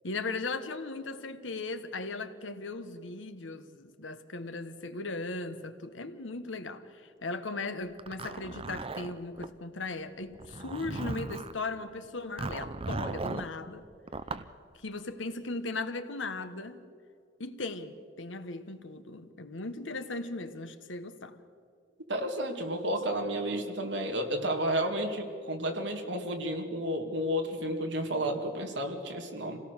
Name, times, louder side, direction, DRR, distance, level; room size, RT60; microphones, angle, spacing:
voice 1, 0.0-6.8 7.2-13.8 14.8-16.8 17.4-21.4, left 3 dB, 80° left, 1.3 m, -37 dB
Zipper (clothing), 8.0-9.5 10.3-11.6 12.4-13.5 14.1-14.5, right 3 dB, 30° right, 0.7 m, -37 dB
voice 2, 22.1-29.6, right 1 dB, 65° right, 2.3 m, -32 dB
27.0 x 17.5 x 6.6 m
head